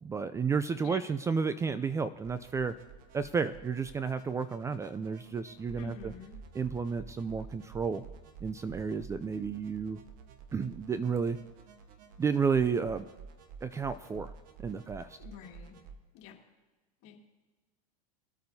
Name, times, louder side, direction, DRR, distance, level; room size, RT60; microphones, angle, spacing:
voice 1, 0.0-2.7 3.1-6.1 6.5-8.0 8.4-10.0 10.5-11.4 12.2-13.0 13.6-14.3 14.6-15.2, right 5 dB, 15° right, 13 dB, 0.4 m, -32 dB
sound 1, 2.2-15.9, right 5 dB, 45° right, 1.3 m, -51 dB
voice 2, 5.7-6.4 15.2-15.7 16.1-16.4 17.0-17.2, left 8 dB, 55° left, -1 dB, 2.5 m, -48 dB
22.5 x 8.6 x 2.8 m, 1.2 s
supercardioid pair, 115°, 19 cm